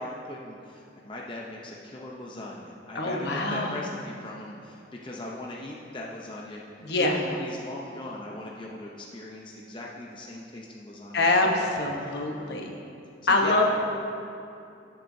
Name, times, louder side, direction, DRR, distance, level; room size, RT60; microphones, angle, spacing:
voice 1, 0.0-6.6 7.0-11.7 12.0-12.7 13.2-13.8, left 1 dB, 25° left, -3 dB, 0.7 m, -39 dB
voice 2, 2.9-3.8 6.8-7.2 11.1-12.8 13.3-13.8, left 2 dB, 55° left, 1 dB, 1.0 m, -24 dB
18.0 x 7.6 x 2.7 m, 2.6 s
head